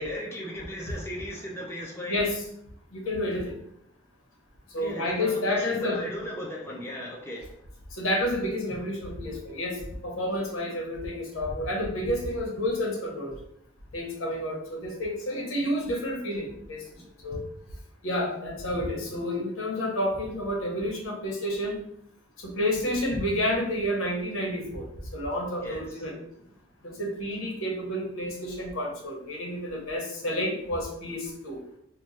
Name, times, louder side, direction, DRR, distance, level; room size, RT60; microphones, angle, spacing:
voice 1, 0.0-2.2 4.8-7.5 17.0-17.1 25.6-26.0, equal, 10° left, -3 dB, 0.4 m, -37 dB
voice 2, 2.1-2.4 2.9-3.5 4.7-6.0 7.9-13.4 13.9-16.8 17.2-17.4 18.0-21.8 22.4-24.9 25.1-26.2 26.8-31.6, left 1 dB, 80° left, -1 dB, 1.0 m, -30 dB
3.0 x 2.2 x 4.0 m, 0.73 s
head